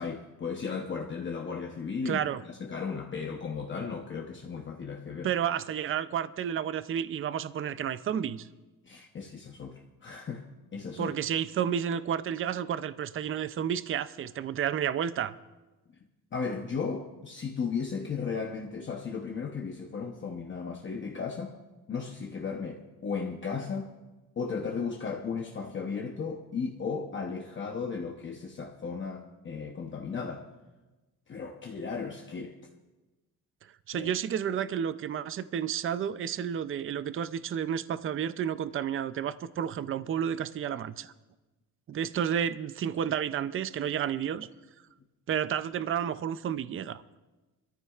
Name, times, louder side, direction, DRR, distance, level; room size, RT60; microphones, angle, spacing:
voice 1, 0.0-5.3 8.8-11.2 16.3-21.5 21.9-23.9 24.4-30.5 31.3-32.7 33.9-34.1, left 5 dB, 35° left, 1 dB, 0.8 m, -35 dB
voice 2, 2.1-2.4 5.2-8.5 11.0-15.3 33.9-41.1 41.9-44.5 45.3-47.0, right 9 dB, 35° right, 14 dB, 0.4 m, -31 dB
25.5 x 14.0 x 2.4 m, 1.1 s
wide cardioid pair, 165°, 35 cm